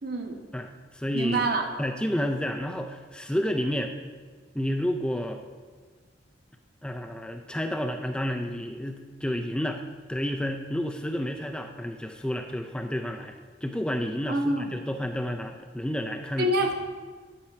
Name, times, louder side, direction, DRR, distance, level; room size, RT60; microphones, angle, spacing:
voice 1, 0.0-0.4 1.1-1.6 14.3-14.7 16.4-16.7, right 1 dB, 55° right, 2 dB, 1.2 m, -26 dB
voice 2, 0.5-1.5 1.8-3.9 4.5-5.4 6.8-9.8 10.1-13.3 13.6-16.5, equal, 5° left, 5 dB, 0.4 m, -30 dB
11.5 x 4.4 x 5.8 m, 1.5 s
head